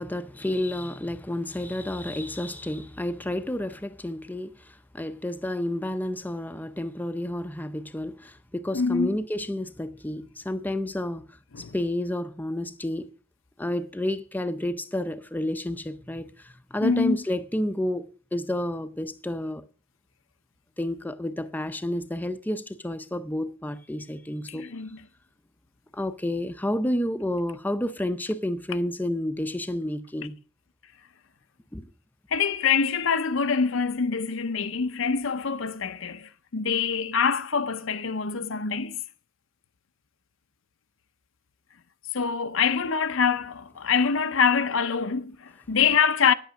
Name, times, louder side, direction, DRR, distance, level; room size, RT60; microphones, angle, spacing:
voice 1, 0.0-13.1 13.6-19.6 20.8-24.7 25.9-30.4 31.7-31.9, left 1 dB, 10° left, 0.6 m, -30 dB
voice 2, 8.7-9.2 11.5-11.7 16.8-17.2 24.5-25.1 32.3-39.0 42.1-46.3, left 6 dB, 85° left, 0.7 m, -25 dB
10.0 x 8.2 x 6.3 m
head